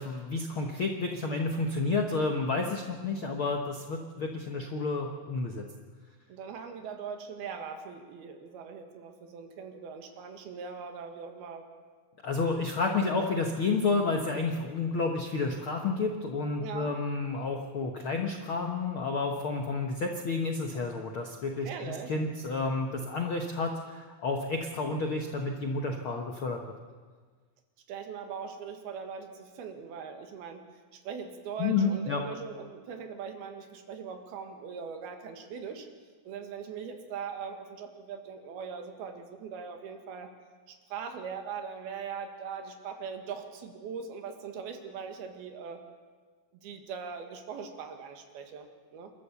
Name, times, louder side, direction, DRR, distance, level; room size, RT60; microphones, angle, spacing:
voice 1, 0.0-5.6 12.2-26.6 31.6-32.2, left 3 dB, 70° left, 2 dB, 1.2 m, -30 dB
voice 2, 6.3-11.7 16.6-16.9 21.6-22.1 27.9-30.7 30.9-35.9 36.3-40.3 40.7-45.8 46.6-49.1, right 6 dB, 85° right, 5 dB, 3.6 m, -41 dB
28.5 x 13.0 x 7.0 m, 1.5 s
omnidirectional pair, 4.3 m